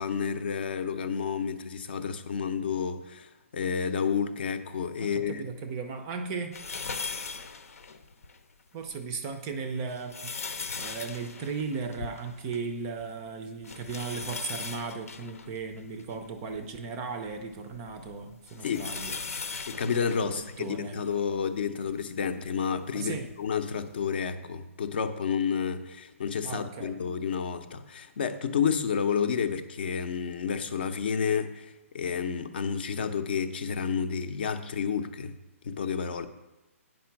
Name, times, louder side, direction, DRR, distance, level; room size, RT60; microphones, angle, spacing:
voice 1, 0.0-3.3 3.5-5.4 18.6-18.9 19.7-35.4 35.6-36.3, left 6 dB, 45° left, 0.6 m, -30 dB
voice 2, 5.0-6.6 8.7-10.3 10.8-19.2 20.2-21.0 22.9-23.3 26.4-27.0, right 5 dB, 15° right, 0.5 m, -36 dB
sound 1, 6.5-8.4 8.9-9.0 9.7-12.7 13.0-13.1 13.6-16.7 17.3-21.2 21.9-22.0 23.3-23.4, left 4 dB, 80° left, 0.8 m, -39 dB
9.2 x 5.2 x 5.8 m
hypercardioid pair, 170°, 8 cm